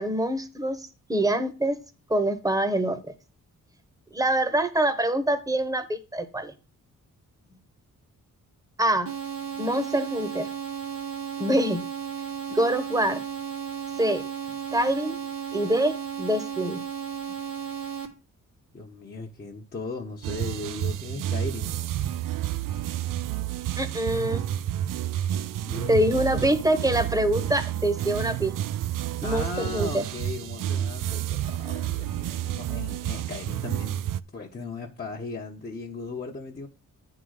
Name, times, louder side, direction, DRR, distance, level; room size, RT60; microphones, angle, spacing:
voice 1, 0.0-1.8 2.1-3.0 4.1-6.5 8.8-9.1 9.6-10.5 11.4-11.8 12.5-13.2 14.0-14.2 14.7-15.2 15.5-16.8 23.8-24.4 25.9-28.5 29.2-30.0, right 1 dB, 10° right, 1.1 m, -25 dB
sound 1, 9.1-18.1, right 8 dB, 90° right, 1.7 m, -34 dB
voice 2, 18.7-21.8 22.0-22.1 25.6-26.6 29.2-34.0 34.3-36.7, left 3 dB, 30° left, 1.0 m, -37 dB
sound 2, 20.2-34.2, right 12 dB, 70° right, 0.5 m, -30 dB
9.2 x 3.9 x 6.3 m
cardioid pair, 115°, 33 cm